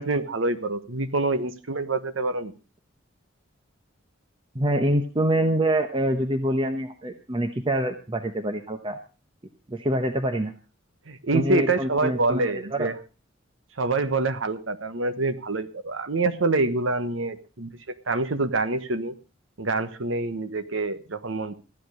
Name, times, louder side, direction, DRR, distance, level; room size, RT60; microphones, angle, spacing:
voice 1, 0.0-2.5 11.1-12.9 13.8-17.8 18.1-19.1 19.6-21.5, right 3 dB, 75° right, 11 dB, 1.2 m, -26 dB
voice 2, 4.5-9.0 9.7-10.5 11.3-12.9, right 1 dB, 25° right, 6 dB, 1.0 m, -25 dB
14.0 x 11.0 x 5.0 m, 0.34 s
head